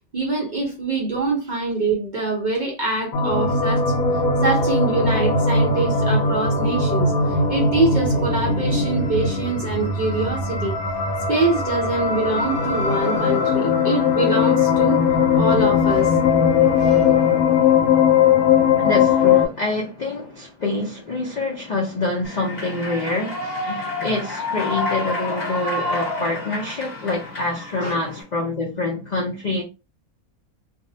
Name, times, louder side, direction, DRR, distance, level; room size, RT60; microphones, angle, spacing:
voice 1, 0.1-3.9 4.4-10.8 11.3-15.0 15.4-16.1 16.8-17.1 27.8-28.0, right 3 dB, 45° right, 0.6 m, -24 dB
sound 1, 3.1-19.5, left 5 dB, 80° left, 1.0 m, -19 dB
voice 2, 18.8-29.6, left 2 dB, 55° left, 0.4 m, -26 dB
Human voice / Clapping / Cheering, 22.2-28.2, left 1 dB, 30° left, 1.3 m, -29 dB
2.5 x 2.0 x 2.6 m
omnidirectional pair, 1.5 m